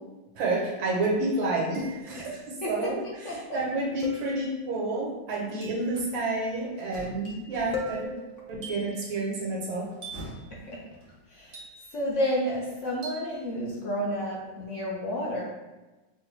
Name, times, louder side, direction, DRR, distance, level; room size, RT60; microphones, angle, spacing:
voice 1, 0.4-8.1 8.5-9.9, right 2 dB, 75° right, -3 dB, 1.7 m, -30 dB
sound 1, 0.6-0.7 1.7-2.3 4.0-4.3 5.6-5.9 7.2-7.6 8.6-9.0 10.0-10.4 11.5-12.1 13.0-13.4, right 4 dB, 45° right, 0.8 m, -45 dB
sound 2, 1.8-2.4 4.0-5.1 7.7-9.0, left 3 dB, 75° left, 1.2 m, -39 dB
voice 2, 3.2-3.6 10.5-10.8 11.3-11.6 11.9-15.4, equal, 60° left, -4 dB, 0.8 m, -30 dB
sound 3, 5.8-8.4 9.7-11.5, equal, 40° left, 0.3 m, -47 dB
4.9 x 2.2 x 3.3 m, 1.1 s
omnidirectional pair, 2.2 m